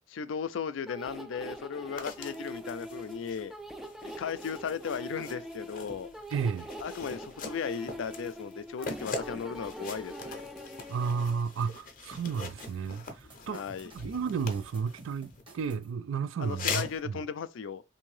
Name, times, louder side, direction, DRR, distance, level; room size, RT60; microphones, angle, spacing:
voice 1, 0.0-3.5 4.0-6.1 6.8-10.4 13.5-13.9 16.4-17.8, left 6 dB, 85° left, 0.4 m, -36 dB
sound 1, 0.9-11.4, equal, ahead, 0.3 m, -43 dB
sound 2, 2.0-15.4 16.4-17.0, left 4 dB, 45° left, 0.7 m, -42 dB
voice 2, 6.3-6.7 10.9-13.1 13.5-13.6 13.9-17.2, right 6 dB, 90° right, 0.3 m, -32 dB
sound 3, 12.1-15.9, right 1 dB, 25° right, 0.9 m, -52 dB
3.5 x 2.6 x 3.1 m
head